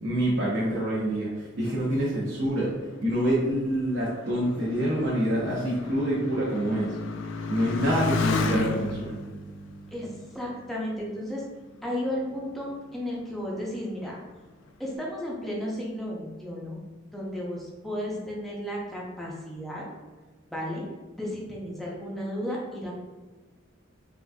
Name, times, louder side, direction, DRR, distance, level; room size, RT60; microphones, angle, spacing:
voice 1, 0.0-2.7 3.0-6.9 7.5-9.1, equal, 60° right, -7 dB, 0.7 m, -26 dB
Motorcycle, 2.4-11.4 12.1-12.7, left 3 dB, 70° left, 0.3 m, -33 dB
voice 2, 9.9-11.4 11.8-14.1 14.8-16.8 17.1-19.8 20.5-20.8 21.2-22.9, equal, ahead, -4 dB, 0.5 m, -33 dB
3.7 x 2.5 x 2.2 m, 1.3 s
head